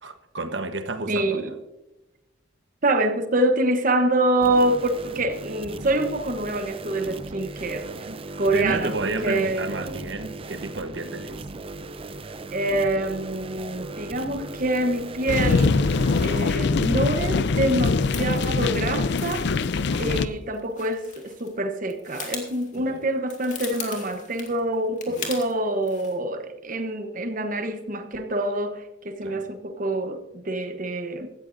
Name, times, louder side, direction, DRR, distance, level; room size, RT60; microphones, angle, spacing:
voice 1, 0.0-1.6 7.9-8.2 8.5-11.4 19.9-20.4 22.8-23.0 25.1-25.4 29.2-29.4, right 2 dB, 65° right, 1.2 m, -32 dB
voice 2, 1.1-1.5 2.8-7.9 8.4-10.0 12.5-15.8 16.2-19.5 20.0-31.3, right 1 dB, 45° right, 1.0 m, -26 dB
sound 1, 4.4-16.5, right 2 dB, 30° right, 0.5 m, -38 dB
sound 2, 15.3-20.3, left 4 dB, 60° left, 0.5 m, -23 dB
sound 3, 18.0-21.6 21.8-25.5 25.8-26.2, left 6 dB, 40° left, 2.3 m, -39 dB
16.5 x 13.0 x 2.6 m
head